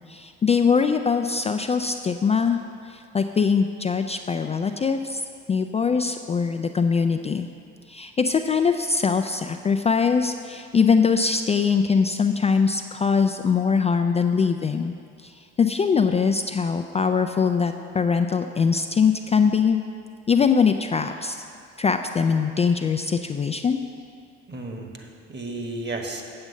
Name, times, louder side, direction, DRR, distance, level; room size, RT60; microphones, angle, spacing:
voice 1, 0.1-2.6 2.8-5.2 5.5-7.5 7.9-14.9 15.2-19.8 20.3-21.4 21.8-23.8, left 5 dB, 20° left, 6 dB, 0.3 m, -22 dB
voice 2, 24.5-26.2, right 2 dB, 30° right, 2 dB, 1.5 m, -33 dB
7.8 x 7.7 x 5.5 m, 2.3 s
figure-of-eight pair, 50°, 35 cm